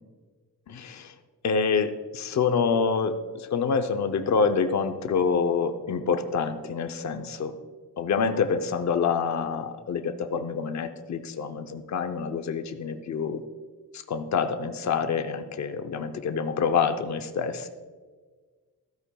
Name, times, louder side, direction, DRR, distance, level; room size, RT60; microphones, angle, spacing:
voice 1, 0.7-1.1 1.4-7.5 8.0-13.4 13.9-17.7, left 5 dB, 55° left, 7 dB, 0.7 m, -27 dB
14.0 x 13.0 x 2.3 m, 1.5 s
wide cardioid pair, 165°, 33 cm